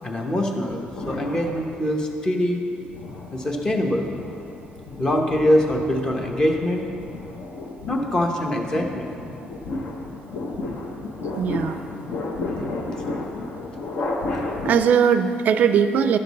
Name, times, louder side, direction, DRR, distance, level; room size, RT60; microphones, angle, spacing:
voice 1, 0.0-2.6 3.3-4.1 5.0-6.8 7.9-9.1, left 1 dB, 20° left, 2 dB, 0.9 m, -23 dB
sound 1, 0.7-2.1 2.7-14.7, left 2 dB, 70° left, 1.0 m, -33 dB
voice 2, 11.4-11.8 14.6-16.2, right 7 dB, 55° right, 9 dB, 0.3 m, -19 dB
11.0 x 6.7 x 4.1 m, 2.6 s
cardioid pair, 145°, 3 cm